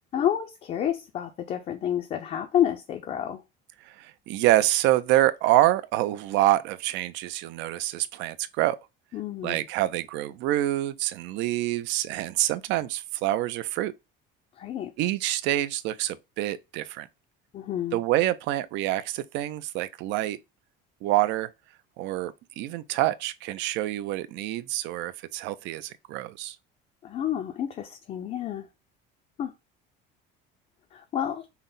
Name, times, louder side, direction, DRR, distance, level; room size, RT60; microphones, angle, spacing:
voice 1, 0.1-3.4 9.1-9.6 14.6-14.9 17.5-18.0 27.0-28.7 29.4-29.5 30.9-31.5, left 10 dB, 35° left, 0.4 m, -29 dB
voice 2, 3.8-8.8 9.4-13.9 15.0-17.1 17.9-20.4 21.0-21.5 22.0-26.6, right 15 dB, 60° right, 0.4 m, -26 dB
5.6 x 2.1 x 3.8 m
cardioid pair, 160°, 21 cm